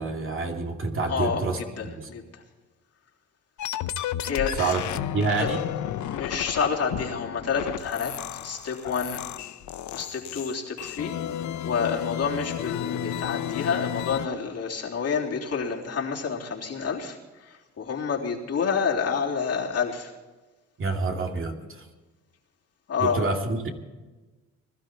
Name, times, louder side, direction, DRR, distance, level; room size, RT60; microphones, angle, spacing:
voice 1, 0.0-2.1 4.5-5.6 20.8-21.8 23.0-23.7, right 3 dB, 45° right, 2 dB, 2.5 m, -28 dB
voice 2, 1.1-1.4 1.8-2.4 4.2-4.6 5.4-5.5 6.1-9.2 9.9-11.1 11.6-20.1 22.9-23.2, left 6 dB, 55° left, -2 dB, 3.4 m, -29 dB
sound 1, 3.6-14.3, left 11 dB, 70° left, 0.8 m, -32 dB
21.5 x 12.5 x 4.5 m, 1.2 s
cardioid pair, 90°, 30 cm